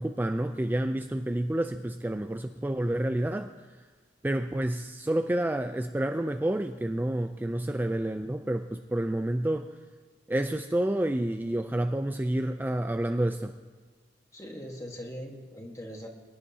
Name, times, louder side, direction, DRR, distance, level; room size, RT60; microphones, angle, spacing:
voice 1, 0.0-3.5 4.2-9.7 10.3-13.6, right 1 dB, 10° right, 7 dB, 0.3 m, -29 dB
voice 2, 14.3-16.1, equal, 20° left, 1 dB, 1.4 m, -41 dB
23.0 x 11.0 x 2.8 m, 1.4 s
head